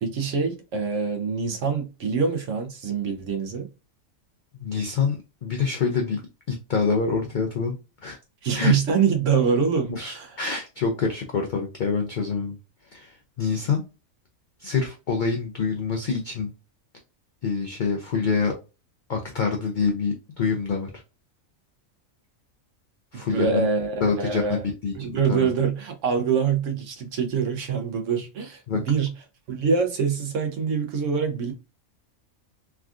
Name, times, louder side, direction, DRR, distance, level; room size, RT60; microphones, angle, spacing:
voice 1, 0.0-3.7 8.4-10.3 23.1-24.6 25.0-29.1 29.5-31.5, right 6 dB, 70° right, 1.0 m, -25 dB
voice 2, 4.5-6.2 6.5-7.8 8.0-8.2 8.5-8.8 9.9-12.6 12.8-13.8 14.6-16.5 17.4-18.5 19.1-20.9 23.1-23.7 24.0-25.5 28.7-28.8, left 5 dB, 70° left, 0.4 m, -26 dB
3.5 x 2.3 x 2.4 m
omnidirectional pair, 1.4 m